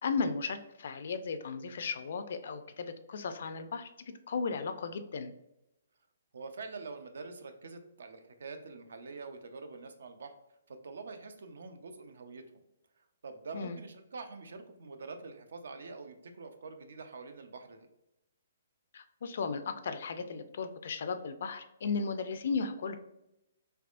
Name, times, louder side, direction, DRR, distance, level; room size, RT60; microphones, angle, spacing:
voice 1, 0.0-3.9 4.3-5.3 13.5-13.8 18.9-23.0, left 5 dB, 55° left, 9 dB, 0.3 m, -35 dB
voice 2, 6.3-10.3 10.7-12.4 13.0-17.9, right 4 dB, 70° right, 7 dB, 0.5 m, -45 dB
3.4 x 3.1 x 2.5 m, 0.86 s
hypercardioid pair, 170°, 0 cm